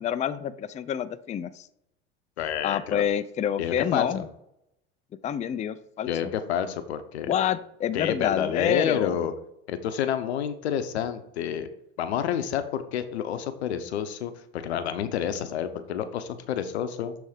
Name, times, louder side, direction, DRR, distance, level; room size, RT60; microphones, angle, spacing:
voice 1, 0.0-1.7 2.6-4.3 5.2-6.3 7.3-9.2, left 9 dB, 20° left, 12 dB, 0.4 m, -27 dB
voice 2, 2.4-3.0 3.6-4.3 6.1-7.3 7.9-9.3 9.7-11.7 12.0-17.2, left 9 dB, 90° left, 10 dB, 0.8 m, -29 dB
7.2 x 3.5 x 5.0 m, 0.79 s
hypercardioid pair, 85°, 32 cm